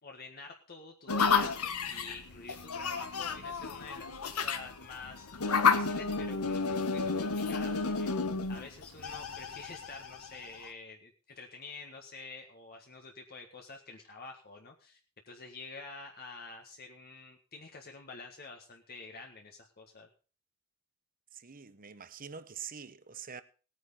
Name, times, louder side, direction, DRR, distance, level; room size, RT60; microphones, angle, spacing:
voice 1, 0.0-15.0 15.2-20.1, left 3 dB, 45° left, 1.6 m, -48 dB
sound 1, 1.1-10.7, left 5 dB, 85° left, 1.3 m, -31 dB
voice 2, 21.4-23.4, right 7 dB, 40° right, 1.0 m, -45 dB
18.5 x 9.4 x 4.1 m
head